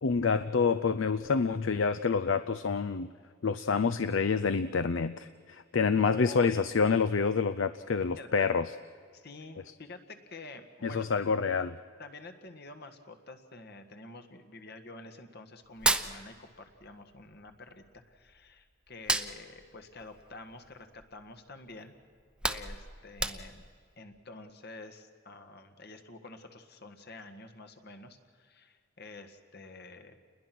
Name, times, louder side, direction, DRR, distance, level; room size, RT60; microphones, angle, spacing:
voice 1, 0.0-3.1 3.4-8.7 10.8-11.8, left 5 dB, 70° left, 13 dB, 0.5 m, -27 dB
voice 2, 6.0-6.6 8.2-8.5 9.1-11.2 12.0-21.9 22.4-23.6 24.0-30.2, left 2 dB, 55° left, 7 dB, 1.7 m, -48 dB
Hands, 15.6-16.9 17.2-18.5 18.9-21.2 21.6-21.8 22.1-23.8, right 2 dB, 5° right, 0.7 m, -32 dB
29.0 x 21.0 x 6.1 m, 2.1 s
head